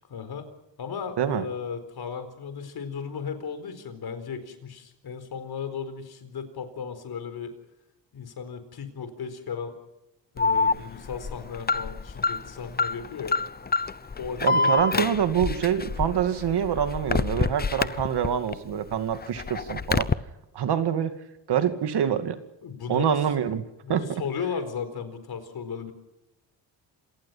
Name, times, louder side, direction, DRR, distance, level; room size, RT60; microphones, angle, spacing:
voice 1, 0.1-0.5 0.8-7.5 8.1-9.7 10.3-13.4 14.2-14.8 22.6-23.3 23.8-25.9, left 6 dB, 60° left, 10 dB, 4.4 m, -35 dB
Alarm, 10.4-18.5 18.9-20.1, left 4 dB, 20° left, 0.8 m, -27 dB
voice 2, 14.4-20.1 20.5-21.1 21.5-22.4 22.9-23.6 23.9-24.2, right 8 dB, 65° right, 9 dB, 2.4 m, -25 dB
27.0 x 19.0 x 5.8 m, 0.92 s
cardioid pair, 115°, 43 cm